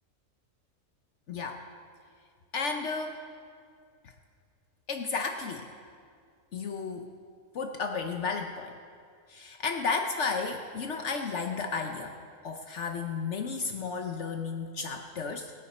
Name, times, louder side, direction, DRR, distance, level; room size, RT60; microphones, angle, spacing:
voice 1, 1.3-1.6 2.5-3.2 4.0-4.1 4.9-5.7 6.5-7.1 7.5-8.7 9.3-12.1 12.4-15.5, left 4 dB, 65° left, 4 dB, 1.1 m, -33 dB
21.0 x 9.6 x 4.2 m, 2.2 s
omnidirectional pair, 1.4 m